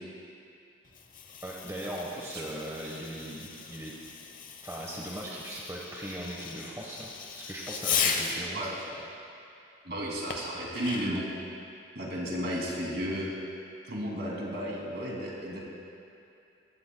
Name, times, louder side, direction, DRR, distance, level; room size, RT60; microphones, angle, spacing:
Fireworks, 0.8-8.5 10.3-11.3, left 6 dB, 45° left, 0.9 m, -36 dB
voice 1, 1.4-3.9 4.6-8.7 9.0-9.1, right 1 dB, 15° right, -4 dB, 1.2 m, -39 dB
voice 2, 9.8-11.3 11.9-13.3 13.9-15.6, equal, 60° right, -3 dB, 2.6 m, -33 dB
20.0 x 15.5 x 2.3 m, 2.6 s
head